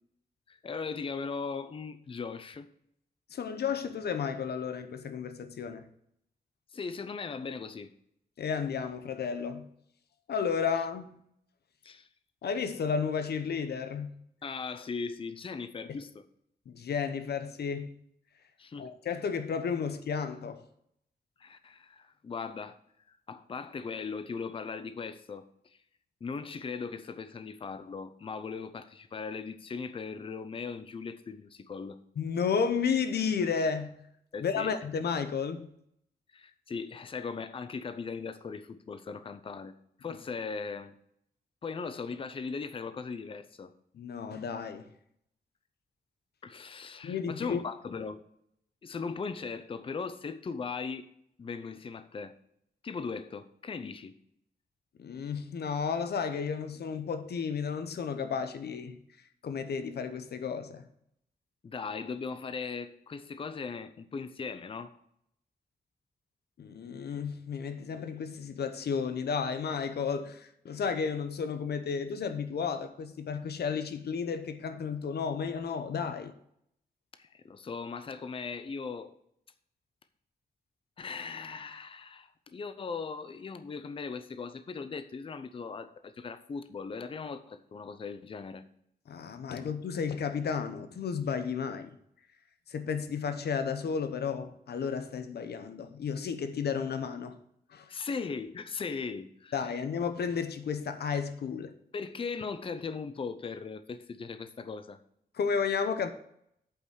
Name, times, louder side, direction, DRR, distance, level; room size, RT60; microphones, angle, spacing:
voice 1, 0.5-2.7 6.7-7.9 11.8-12.1 14.4-16.3 18.6-18.9 21.4-22.8 23.1-25.8 26.2-32.0 34.3-34.7 36.3-39.7 40.0-40.9 41.6-43.7 46.4-48.2 48.8-51.0 51.4-52.4 52.8-54.1 61.6-64.9 77.2-79.2 81.0-88.6 97.9-99.8 101.9-105.0, left 5 dB, 35° left, 0.6 m, -39 dB
voice 2, 3.3-5.9 8.4-9.7 10.3-11.2 12.4-14.1 16.7-17.9 18.8-20.6 32.2-34.0 34.4-35.7 43.9-44.9 47.0-47.6 55.0-59.0 59.4-60.9 66.6-76.3 89.1-91.9 92.7-97.4 97.7-97.9 99.5-101.7 105.3-106.1, left 6 dB, 85° left, 0.8 m, -32 dB
8.5 x 5.5 x 6.2 m
wide cardioid pair, 170°, 17 cm